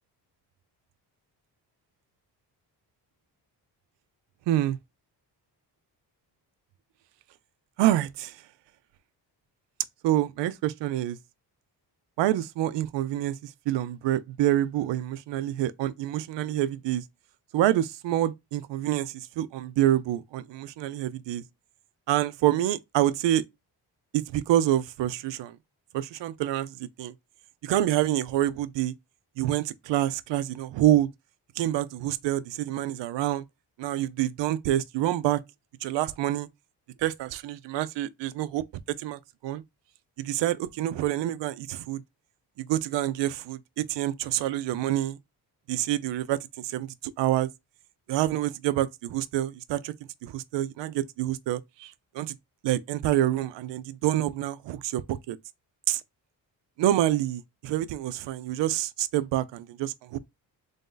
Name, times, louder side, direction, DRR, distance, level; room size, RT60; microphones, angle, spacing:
voice 1, 4.5-4.8 7.8-8.4 10.0-11.2 12.2-17.0 17.5-21.4 22.1-23.4 24.1-25.6 25.9-27.1 27.6-28.9 29.4-31.1 31.6-33.4 33.8-35.4 35.8-36.5 37.0-39.6 40.2-42.0 42.6-45.2 45.7-47.5 48.1-49.9 50.2-52.3 52.6-55.4 55.9-56.0 56.8-60.2, right 13 dB, 80° right, 0.5 m, -27 dB
3.5 x 2.7 x 3.7 m
cardioid pair, 95°, 42 cm